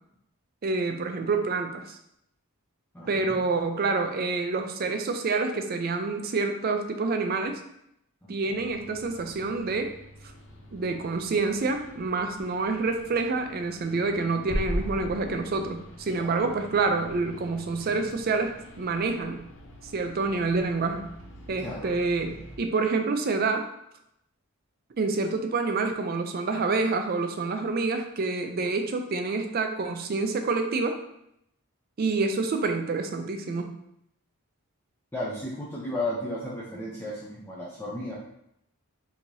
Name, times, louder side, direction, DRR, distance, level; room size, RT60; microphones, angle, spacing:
voice 1, 0.6-2.0 3.1-7.6 8.3-9.9 10.7-19.4 19.9-21.1 21.5-23.6 25.0-31.0 32.0-33.7, right 3 dB, 45° right, 5 dB, 0.4 m, -27 dB
voice 2, 2.9-3.4 8.2-8.4 16.1-16.5 21.6-21.9 35.1-38.2, left 1 dB, 10° left, -6 dB, 0.5 m, -34 dB
sound 1, 8.5-22.6, equal, 55° left, 0.7 m, -41 dB
4.5 x 2.8 x 2.6 m, 0.77 s
head